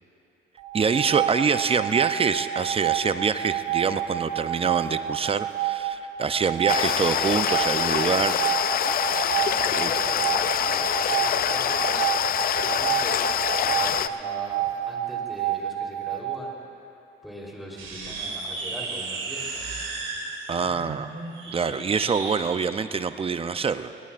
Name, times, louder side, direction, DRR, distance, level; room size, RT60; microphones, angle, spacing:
sound 1, 0.6-16.4, right 12 dB, 60° right, 1.3 m, -29 dB
voice 1, 0.7-8.4 9.8-9.9 20.5-21.1 21.5-23.9, right 5 dB, 30° right, 11 dB, 0.5 m, -25 dB
sound 2, 6.7-14.1, left 9 dB, 50° left, 0.4 m, -25 dB
voice 2, 9.3-16.6 17.2-19.6 21.5-21.9, equal, ahead, -4 dB, 3.6 m, -41 dB
sound 3, 17.7-22.4, right 3 dB, 75° right, 2.8 m, -34 dB
20.5 x 18.5 x 2.5 m, 2.9 s
cardioid pair, 90°, 20 cm